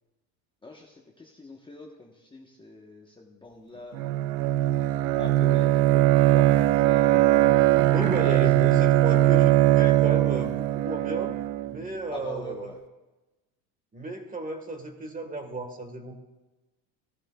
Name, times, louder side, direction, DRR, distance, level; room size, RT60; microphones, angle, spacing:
voice 1, 0.6-4.1 5.1-7.3 8.4-8.5 12.1-12.8, left 2 dB, 10° left, 0 dB, 0.9 m, -43 dB
Bowed string instrument, 3.9-11.8, right 15 dB, 85° right, 0.6 m, -21 dB
voice 2, 7.9-11.3 11.7-12.7 13.9-16.2, right 2 dB, 20° right, 6 dB, 1.4 m, -33 dB
15.0 x 13.0 x 2.3 m, 1.1 s
supercardioid pair, 115°, 44 cm